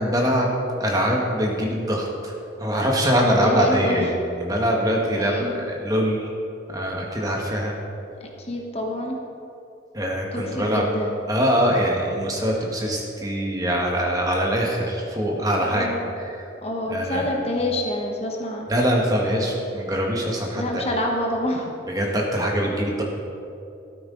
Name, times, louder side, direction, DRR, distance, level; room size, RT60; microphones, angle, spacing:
voice 1, 0.0-2.3 2.6-6.3 6.7-7.7 9.9-10.9 11.3-15.9 16.1-16.4 16.9-17.2 18.7-20.8 21.9-23.0, equal, 20° right, -1 dB, 1.5 m, -23 dB
voice 2, 3.2-4.1 5.0-5.6 8.2-9.2 10.3-11.2 15.6-16.0 16.6-18.7 20.5-21.8 22.6-22.9, left 1 dB, 30° left, 1 dB, 1.2 m, -27 dB
13.0 x 12.5 x 3.9 m, 2.7 s
head